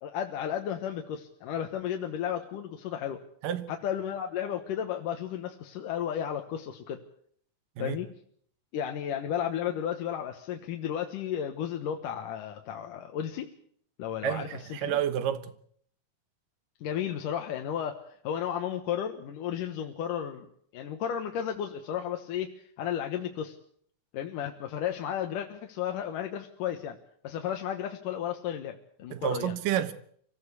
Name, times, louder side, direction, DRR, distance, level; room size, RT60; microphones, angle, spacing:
voice 1, 0.0-3.2 3.7-7.0 7.8-8.1 8.7-13.5 14.0-15.0 16.8-20.5 20.7-22.5 22.8-23.6 24.1-27.0 27.2-29.5, left 9 dB, 75° left, 2.8 m, -33 dB
voice 2, 14.2-15.5 29.1-29.9, right 10 dB, 80° right, 2.9 m, -30 dB
24.5 x 15.5 x 8.4 m
omnidirectional pair, 3.9 m